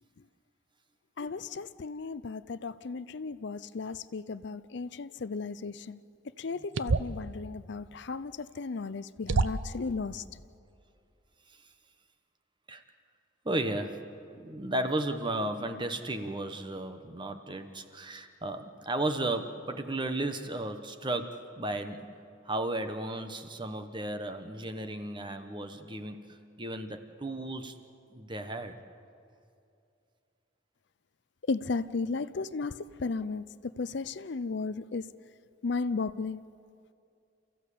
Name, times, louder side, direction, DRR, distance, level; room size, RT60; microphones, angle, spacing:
voice 1, 1.2-6.0 6.4-10.2 31.5-33.4 33.8-35.0 35.6-36.4, left 4 dB, 60° left, 15 dB, 0.5 m, -35 dB
sound 1, 6.7-7.2 8.6-8.7 9.3-9.8, right 3 dB, 70° right, 0.6 m, -27 dB
voice 2, 13.4-14.1 14.3-22.1 22.4-27.8 28.1-28.8, right 1 dB, 25° right, 8 dB, 1.1 m, -34 dB
29.5 x 15.0 x 8.5 m, 2.5 s
head